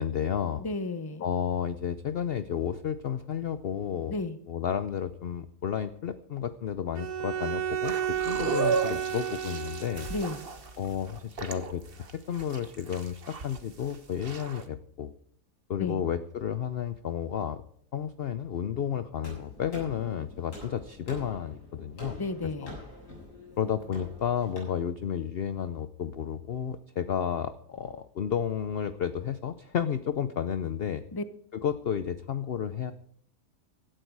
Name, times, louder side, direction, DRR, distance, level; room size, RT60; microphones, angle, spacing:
voice 1, 0.0-0.6 1.2-4.2 4.5-10.1 10.8-11.8 12.1-15.1 15.7-17.6 17.9-22.2 22.6-22.7 23.6-31.0 31.5-32.9, left 8 dB, 60° left, 12 dB, 0.6 m, -32 dB
voice 2, 0.6-1.2 4.1-4.4 10.1-10.4 15.8-16.0 22.2-22.8 31.1-31.2, left 2 dB, 20° left, 12 dB, 0.7 m, -33 dB
Bowed string instrument, 6.9-10.5, right 9 dB, 60° right, 1.6 m, -32 dB
sound 1, 7.8-14.6, right 5 dB, 40° right, 1.4 m, -35 dB
sound 2, 19.2-24.6, left 1 dB, 85° left, 7.7 m, -45 dB
17.0 x 12.5 x 4.7 m, 0.63 s
omnidirectional pair, 1.7 m